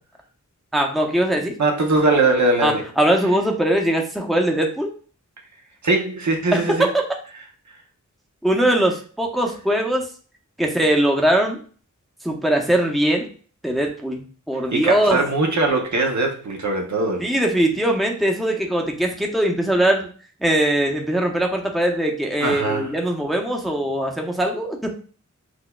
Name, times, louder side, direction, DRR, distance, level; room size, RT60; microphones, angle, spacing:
voice 1, 0.7-1.6 2.6-4.9 6.5-7.0 8.4-10.0 10.6-11.6 12.2-13.3 13.6-15.2 17.2-20.1 20.4-24.9, right 1 dB, ahead, 1 dB, 0.7 m, -21 dB
voice 2, 1.6-2.9 5.8-6.9 14.5-17.3 22.4-22.9, right 2 dB, 65° right, 3 dB, 0.7 m, -21 dB
6.0 x 2.2 x 2.2 m, 0.41 s
wide cardioid pair, 60°, 31 cm